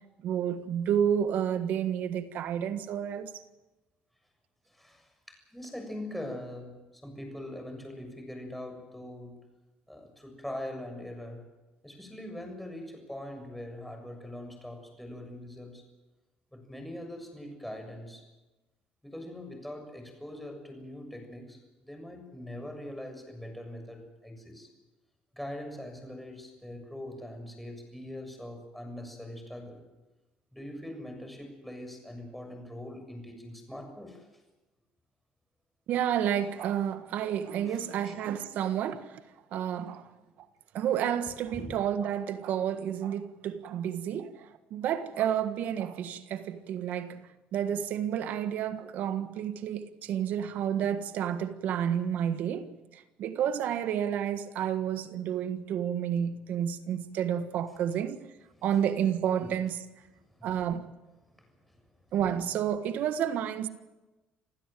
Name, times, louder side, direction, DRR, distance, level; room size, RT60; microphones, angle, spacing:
voice 1, 0.2-3.3 35.9-39.2 39.5-40.1 40.7-58.2 58.6-59.8 60.4-60.9 62.1-63.7, right 9 dB, 65° right, 1.6 m, -30 dB
voice 2, 4.7-9.4 9.9-11.5 11.8-15.8 16.5-18.2 19.0-24.7 25.3-29.8 30.5-34.3 37.6-37.8 38.1-38.2 40.2-40.3 41.5-41.7 58.6-58.7 59.4-59.5 60.3-60.5 61.4-61.8 62.1-62.2, left 1 dB, 5° left, 7.0 m, -42 dB
28.0 x 16.0 x 7.7 m
cardioid pair, 100°, 3 cm